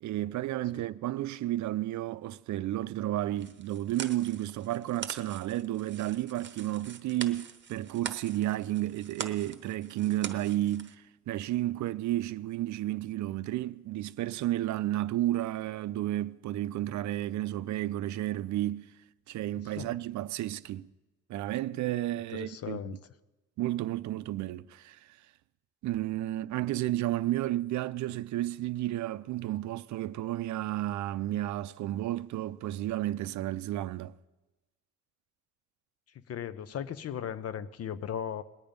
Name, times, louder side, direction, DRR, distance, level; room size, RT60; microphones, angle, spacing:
voice 1, 0.0-18.9 19.3-20.9 21.3-23.0 23.6-25.2 25.8-34.1, right 14 dB, 70° right, 0.5 m, -32 dB
sound 1, 3.4-11.0, right 7 dB, 40° right, 0.9 m, -43 dB
voice 2, 22.3-23.0 36.3-38.4, left 9 dB, 55° left, 0.7 m, -37 dB
20.5 x 8.7 x 5.2 m
cardioid pair, 90°, 30 cm